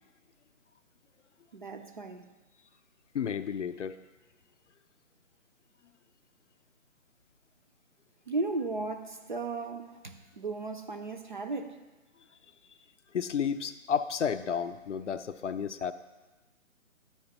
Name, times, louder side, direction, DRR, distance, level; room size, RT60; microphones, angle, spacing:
voice 1, 1.5-2.3 8.3-11.8, right 3 dB, 35° right, 0.5 m, -35 dB
voice 2, 3.1-4.0 13.1-15.9, left 7 dB, 60° left, 0.5 m, -32 dB
12.5 x 4.4 x 2.9 m
figure-of-eight pair, 150°, 41 cm